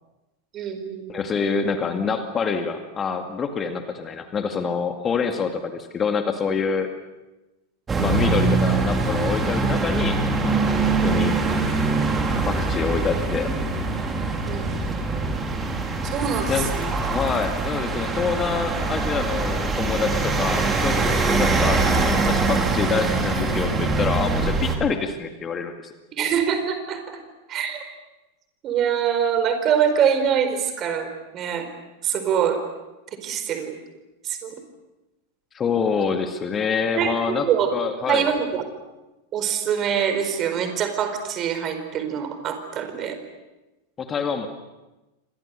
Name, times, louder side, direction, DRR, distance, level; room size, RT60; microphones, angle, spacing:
voice 1, 0.5-1.2 14.4-15.5 16.0-16.9 26.1-27.2 27.5-27.8 28.6-31.7 32.0-32.6 33.2-33.8 34.2-34.5 36.9-37.7 38.1-38.6 39.3-43.2, right 8 dB, 30° right, 8 dB, 4.5 m, -24 dB
voice 2, 1.1-6.9 8.0-11.3 12.4-13.5 16.5-25.9 35.5-37.5 37.7-38.3 44.0-44.5, left 5 dB, 20° left, 6 dB, 2.2 m, -26 dB
sound 1, 7.9-24.7, right 3 dB, 15° right, 4.1 m, -23 dB
29.5 x 25.5 x 6.7 m, 1.0 s
figure-of-eight pair, 90°, 0 cm